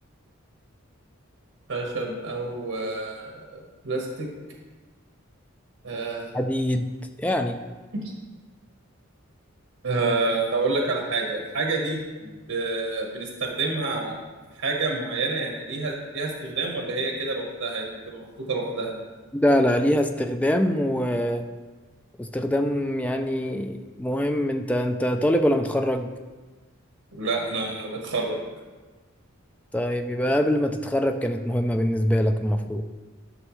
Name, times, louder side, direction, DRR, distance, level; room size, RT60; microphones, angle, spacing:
voice 1, 1.7-4.3 5.8-6.3 7.9-8.0 9.8-14.2 14.6-19.0 27.1-28.4, right 3 dB, 80° right, 0 dB, 1.3 m, -28 dB
voice 2, 6.3-6.9 7.2-7.6 19.4-21.4 22.2-26.1 29.7-32.8, equal, 5° left, 5 dB, 0.3 m, -24 dB
11.0 x 6.3 x 3.1 m, 1.3 s
head